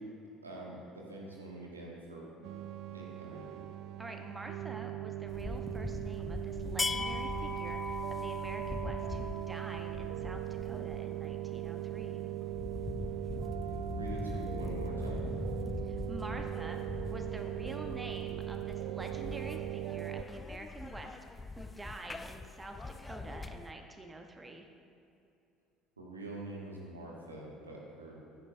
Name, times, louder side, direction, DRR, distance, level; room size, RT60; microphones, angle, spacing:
voice 1, 0.4-2.3 2.9-3.5 14.0-15.3 26.0-28.2, right 2 dB, 85° right, -3 dB, 1.6 m, -45 dB
sound 1, 2.4-20.2, right 13 dB, 55° right, 0.4 m, -39 dB
voice 2, 4.0-12.2 15.8-16.8 17.1-21.1 21.6-24.7, right 2 dB, 20° right, 4 dB, 1.0 m, -47 dB
sound 2, 5.3-23.7, left 3 dB, 20° left, 0.4 m, -41 dB
15.5 x 9.7 x 2.7 m, 2.7 s
figure-of-eight pair, 60°, 0 cm